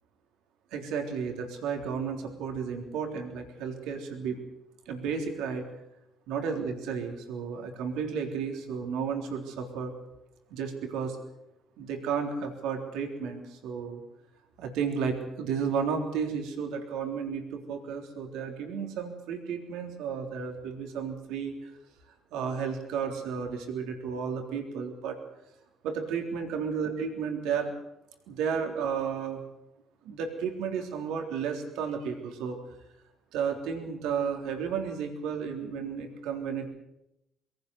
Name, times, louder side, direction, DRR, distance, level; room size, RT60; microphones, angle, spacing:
voice 1, 0.7-4.4 4.9-5.7 6.3-9.9 10.5-11.2 11.8-14.0 14.6-21.7 22.3-25.2 25.8-27.7 28.3-29.4 30.0-32.6 33.3-36.7, right 6 dB, 75° right, 3 dB, 3.6 m, -33 dB
23.0 x 17.5 x 8.2 m, 0.87 s
hypercardioid pair, 55°, 0 cm